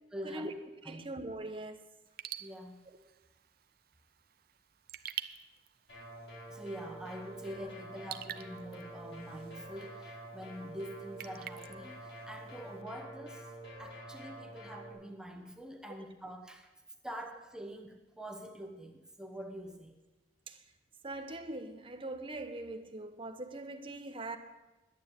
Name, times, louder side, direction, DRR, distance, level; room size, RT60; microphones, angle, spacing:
voice 1, 0.1-0.5 0.8-1.1 2.4-2.8 6.5-13.5 13.8-16.7 17.0-20.0, equal, 5° right, 4 dB, 1.0 m, -45 dB
voice 2, 0.9-1.8 20.5-20.6 21.0-24.4, right 2 dB, 30° right, 7 dB, 1.0 m, -41 dB
Raindrop / Drip, 2.1-12.8, right 11 dB, 55° right, 0.6 m, -49 dB
sound 1, 5.9-14.9, right 1 dB, 85° left, 4.9 m, -48 dB
11.5 x 9.4 x 8.3 m, 1.1 s
head